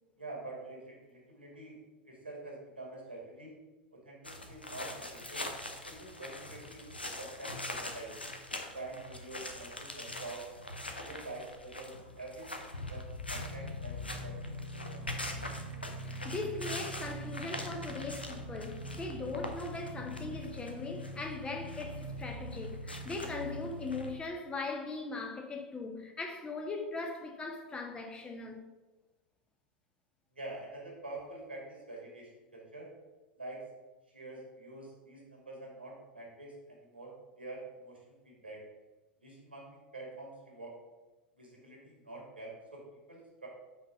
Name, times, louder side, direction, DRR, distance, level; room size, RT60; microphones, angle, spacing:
voice 1, 0.2-1.8 2.0-3.5 3.9-5.5 5.9-6.9 7.2-8.2 8.7-10.5 11.0-15.0 30.3-32.9 33.4-33.6 34.1-38.6 39.2-40.7 41.3-42.8 43.1-43.5, right 2 dB, 85° right, 2.1 m, -46 dB
sound 1, 4.2-24.1, left 1 dB, 90° left, 0.7 m, -41 dB
voice 2, 16.0-28.6, left 3 dB, 20° left, 1.0 m, -39 dB
5.5 x 4.1 x 5.7 m
figure-of-eight pair, 85°, 5 cm